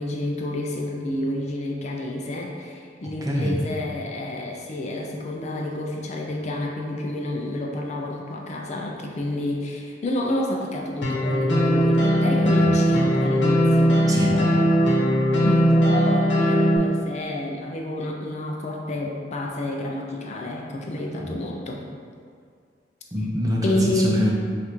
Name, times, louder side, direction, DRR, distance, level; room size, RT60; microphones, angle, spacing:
voice 1, 0.0-14.5 15.3-21.8 23.6-24.2, left 1 dB, 40° left, 0 dB, 0.4 m, -29 dB
voice 2, 3.0-3.6 12.6-12.8 14.1-14.4 21.2-21.4 23.1-24.3, equal, 20° right, -3 dB, 0.5 m, -26 dB
sound 1, 11.0-16.8, equal, 85° left, 0.9 m, -19 dB
5.4 x 2.5 x 3.0 m, 2.1 s
head